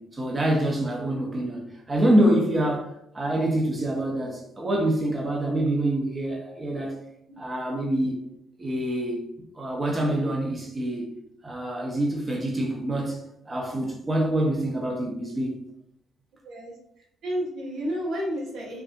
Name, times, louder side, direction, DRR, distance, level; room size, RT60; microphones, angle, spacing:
voice 1, 0.0-7.0 7.4-8.3 8.6-9.2 9.5-11.1 11.4-15.6, right 1 dB, 35° right, -1 dB, 1.0 m, -26 dB
voice 2, 16.4-18.8, equal, 70° right, -4 dB, 1.2 m, -32 dB
4.7 x 2.6 x 2.6 m, 0.78 s
hypercardioid pair, 45°, 0 cm